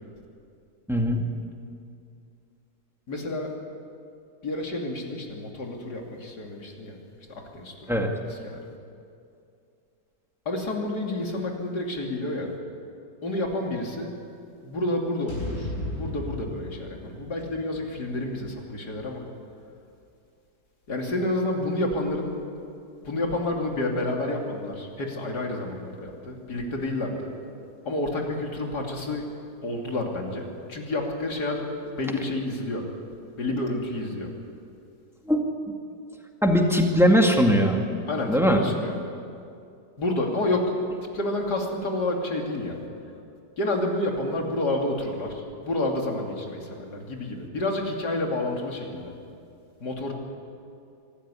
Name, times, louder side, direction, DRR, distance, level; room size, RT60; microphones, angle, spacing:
voice 1, 0.9-1.3 7.9-8.2 35.3-35.5 36.4-37.8 38.3-38.6, equal, ahead, 2 dB, 2.0 m, -20 dB
voice 2, 3.1-3.5 4.4-7.0 7.3-7.7 8.3-8.7 10.5-12.5 13.2-14.1 14.6-19.2 20.9-22.4 23.0-27.3 27.9-29.3 29.6-31.7 32.0-32.9 33.4-34.3 38.1-39.0 40.0-40.7 41.1-42.8 43.6-49.1 49.8-50.1, left 2 dB, 65° left, 1 dB, 3.4 m, -29 dB
sound 1, 15.3-19.5, left 1 dB, 45° left, 7.3 m, -37 dB
25.0 x 13.5 x 9.8 m, 2.5 s
omnidirectional pair, 1.9 m